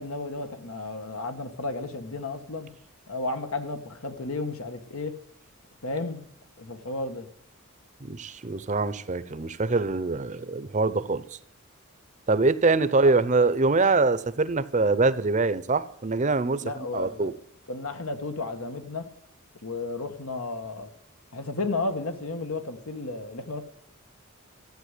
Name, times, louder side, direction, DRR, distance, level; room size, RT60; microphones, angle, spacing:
voice 1, 0.0-2.7 3.1-5.2 5.8-6.2 6.6-7.3 13.0-13.1 16.6-17.3 17.7-19.1 19.6-20.9 21.3-23.6, left 3 dB, 90° left, 1.7 m, -33 dB
voice 2, 8.0-11.2 12.3-16.6 16.9-17.3, right 3 dB, 35° right, 0.7 m, -24 dB
14.0 x 8.6 x 8.3 m
head